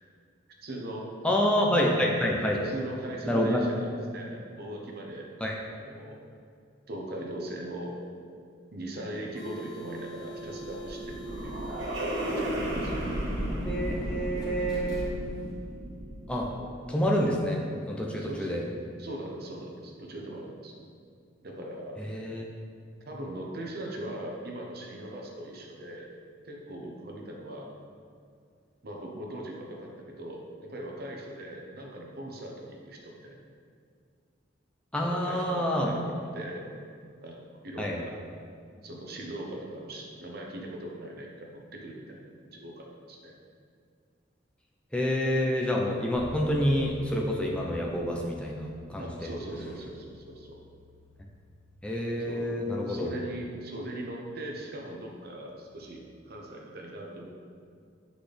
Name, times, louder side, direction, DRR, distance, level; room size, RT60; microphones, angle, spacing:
voice 1, 0.6-1.1 2.6-5.3 5.7-6.2 6.9-8.0 8.7-11.8 12.2-13.1 16.6-16.7 18.2-18.5 19.0-20.7 21.4-22.0 23.1-26.1 26.4-27.7 28.8-33.4 35.0-36.7 37.2-38.1 38.8-42.2 42.5-43.4 49.0-50.6 52.2-52.6 52.8-57.3, right 1 dB, 55° right, 0 dB, 0.8 m, -40 dB
voice 2, 1.2-2.6 3.2-3.6 5.4-5.6 13.7-15.2 16.3-16.5 16.9-17.6 17.9-18.6 22.0-22.4 34.9-35.9 37.8-38.0 44.9-49.4 51.8-53.1, equal, 5° left, -2 dB, 0.5 m, -28 dB
sound 1, 9.1-15.6, right 1 dB, 20° left, 1.0 m, -45 dB
sound 2, 10.3-16.7, right 1 dB, 75° right, 1.3 m, -34 dB
Bass guitar, 46.1-55.9, left 1 dB, 75° left, 1.1 m, -51 dB
8.0 x 4.0 x 3.3 m, 2.3 s
head